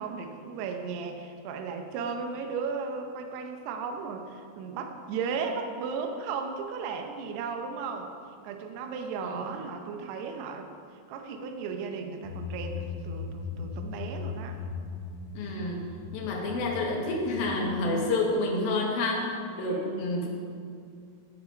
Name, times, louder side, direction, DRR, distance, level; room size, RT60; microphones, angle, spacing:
voice 1, 0.0-8.1 8.4-10.7 11.1-14.6 19.6-20.2, right 5 dB, 80° right, 5 dB, 2.4 m, -35 dB
sound 1, 12.2-17.7, left 5 dB, 85° left, 3.8 m, -38 dB
voice 2, 15.3-19.2 19.5-20.3, left 2 dB, 60° left, -1 dB, 2.7 m, -29 dB
15.5 x 7.2 x 5.3 m, 2.4 s
omnidirectional pair, 5.8 m